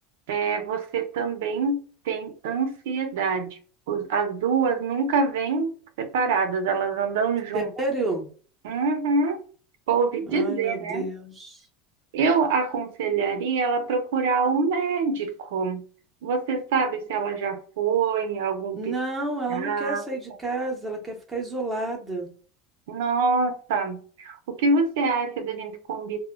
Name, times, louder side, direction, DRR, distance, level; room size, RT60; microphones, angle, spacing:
voice 1, 0.3-3.6 3.9-7.7 8.6-9.4 9.9-11.1 12.1-15.8 16.2-18.9 19.5-20.0 22.9-26.2, right 4 dB, 90° right, 0.6 m, -25 dB
voice 2, 7.5-8.3 10.3-11.6 18.7-22.3, right 2 dB, 10° right, 0.7 m, -30 dB
2.1 x 2.0 x 3.5 m
supercardioid pair, 165°, 0 cm